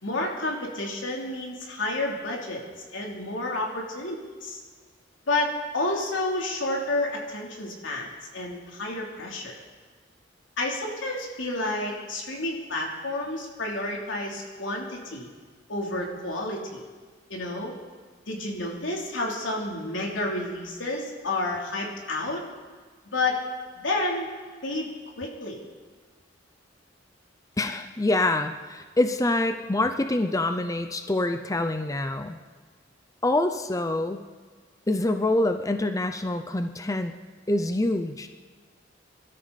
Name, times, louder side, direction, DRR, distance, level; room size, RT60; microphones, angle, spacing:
voice 1, 0.0-2.6 2.9-4.6 5.3-9.6 10.6-15.3 15.7-16.8 17.3-17.7 18.3-22.4 23.0-23.4 23.8-24.3 24.6-25.6, left 2 dB, 85° left, -1 dB, 3.2 m, -30 dB
voice 2, 27.6-32.4 33.2-34.2 34.9-37.1 37.5-38.3, left 2 dB, 20° left, 8 dB, 0.6 m, -26 dB
24.0 x 13.0 x 4.1 m, 1.5 s
head